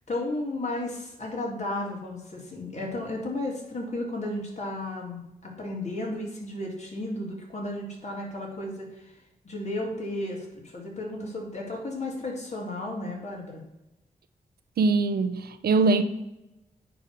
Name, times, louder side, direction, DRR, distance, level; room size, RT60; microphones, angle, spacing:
voice 1, 0.1-9.1 9.4-13.6, left 1 dB, 45° left, -2 dB, 2.9 m, -33 dB
voice 2, 14.8-16.0, right 3 dB, 85° right, 9 dB, 0.8 m, -22 dB
9.6 x 3.6 x 6.7 m, 0.93 s
cardioid pair, 45°, 16 cm